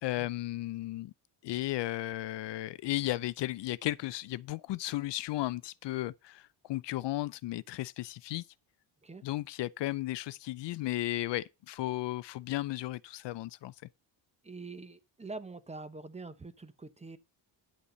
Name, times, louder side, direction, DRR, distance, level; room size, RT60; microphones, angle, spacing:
voice 1, 0.0-1.1 1.4-8.5 9.2-13.7, left 16 dB, 65° left, 0.6 m, -35 dB
voice 2, 14.4-17.2, right 3 dB, 15° right, 0.8 m, -45 dB
10.0 x 8.4 x 3.9 m
cardioid pair, 125°, 48 cm